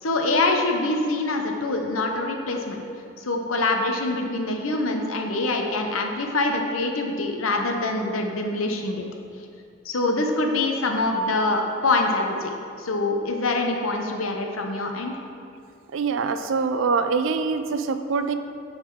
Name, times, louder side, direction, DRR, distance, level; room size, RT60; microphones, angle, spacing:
voice 1, 0.0-2.8 3.2-9.1 9.8-15.1, left 2 dB, 85° left, 3 dB, 0.8 m, -25 dB
voice 2, 15.9-18.3, right 5 dB, 70° right, 9 dB, 0.4 m, -24 dB
8.8 x 4.1 x 4.7 m, 2.4 s
head